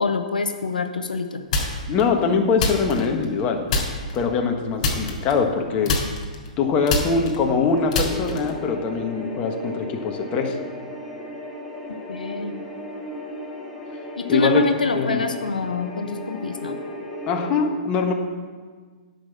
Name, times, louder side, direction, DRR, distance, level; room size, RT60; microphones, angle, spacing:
voice 1, 0.0-1.4 12.1-12.6 14.1-16.8, left 3 dB, 85° left, 6 dB, 0.8 m, -25 dB
sound 1, 1.5-2.0 2.6-3.4 3.7-4.2 4.8-5.6 5.9-8.6, left 3 dB, 55° left, 3.3 m, -25 dB
voice 2, 1.9-3.6 4.1-5.9 6.6-10.6 14.3-14.6 14.9-15.3 17.3-18.1, left 5 dB, 30° left, 3 dB, 1.4 m, -22 dB
sound 2, 7.7-17.5, left 1 dB, 5° left, 2.0 m, -35 dB
10.5 x 5.8 x 7.2 m, 1.5 s
hypercardioid pair, 125°, 4 cm